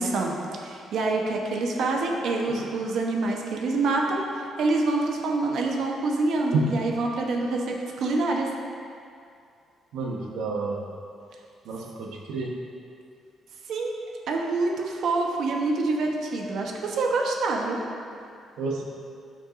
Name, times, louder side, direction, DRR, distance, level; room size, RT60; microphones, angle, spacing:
voice 1, 0.0-8.5 13.7-14.0 14.3-17.8, right 3 dB, 65° right, 0 dB, 1.0 m, -26 dB
voice 2, 9.9-10.8 11.6-12.5 18.6-18.8, right 4 dB, 85° right, -1 dB, 1.1 m, -29 dB
11.5 x 5.9 x 2.6 m, 2.4 s
cardioid pair, 145°, 0 cm